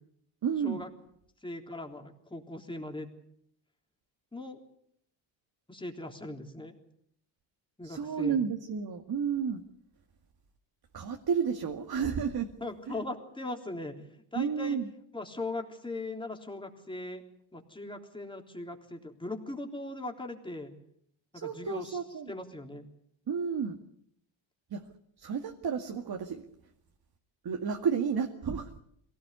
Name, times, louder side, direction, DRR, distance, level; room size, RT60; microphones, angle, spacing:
voice 1, 0.4-0.8 7.8-9.6 10.9-12.5 12.9-13.0 14.3-14.9 21.3-22.3 23.3-23.8 24.7-24.8 25.2-26.5 27.4-28.8, right 6 dB, 50° right, 3 dB, 2.3 m, -31 dB
voice 2, 1.4-3.1 4.3-4.6 5.7-6.7 7.8-8.4 12.6-13.9 14.3-14.8 15.1-17.2 17.5-20.7 21.3-22.0 22.3-22.8, left 2 dB, 10° left, 3 dB, 3.6 m, -39 dB
23.0 x 18.0 x 8.2 m, 0.71 s
cardioid pair, 105°, 48 cm